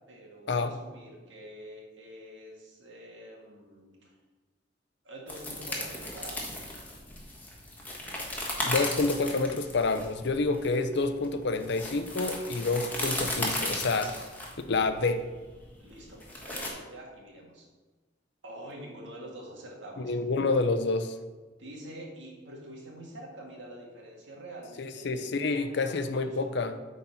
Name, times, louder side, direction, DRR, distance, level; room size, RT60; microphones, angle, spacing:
voice 1, 0.1-4.1 5.0-6.6 14.0-14.2 15.8-17.7 18.4-20.1 21.6-26.7, right 1 dB, 70° right, -1 dB, 1.9 m, -46 dB
sound 1, 5.3-16.7, left 1 dB, 10° left, 1.4 m, -35 dB
voice 2, 8.6-14.2 14.7-15.2 20.0-21.2 24.8-26.7, left 3 dB, 65° left, 9 dB, 0.6 m, -28 dB
8.5 x 4.2 x 5.6 m, 1.3 s
head